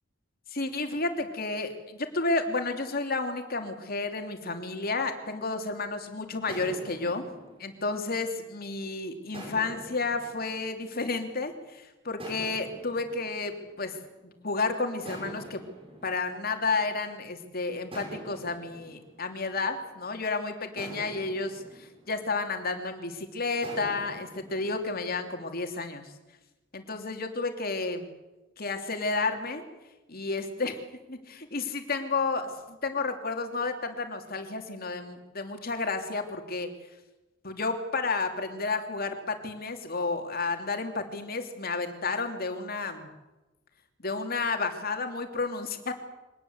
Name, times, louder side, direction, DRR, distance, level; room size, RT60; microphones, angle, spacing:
voice 1, 0.5-7.3 7.6-14.0 14.2-15.6 16.0-26.1 26.7-28.1 28.6-29.6 30.1-30.8 31.1-36.7 37.4-43.1 44.0-45.9, left 3 dB, 50° left, 5 dB, 2.9 m, -31 dB
sound 1, 6.5-8.7 9.3-11.6 12.2-14.5 15.1-17.3 17.9-20.2 20.8-23.0 23.6-25.5, right 1 dB, 30° right, 7.1 m, -46 dB
24.0 x 19.0 x 7.9 m, 1.1 s
head